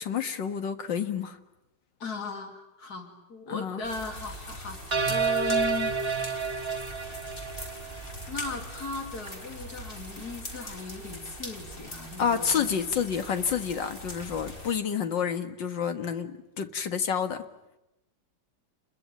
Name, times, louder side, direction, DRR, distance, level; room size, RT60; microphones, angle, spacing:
voice 1, 0.0-1.4 3.5-3.8 12.2-17.4, left 7 dB, 85° left, 8 dB, 2.3 m, -29 dB
voice 2, 2.0-4.8 5.1-6.0 8.3-12.8, left 3 dB, 60° left, 4 dB, 3.3 m, -37 dB
sound 1, 3.8-14.8, equal, 30° left, 4.1 m, -42 dB
sound 2, 4.9-8.2, right 5 dB, 35° right, 1.8 m, -29 dB
29.0 x 22.0 x 9.4 m, 0.93 s
omnidirectional pair, 1.9 m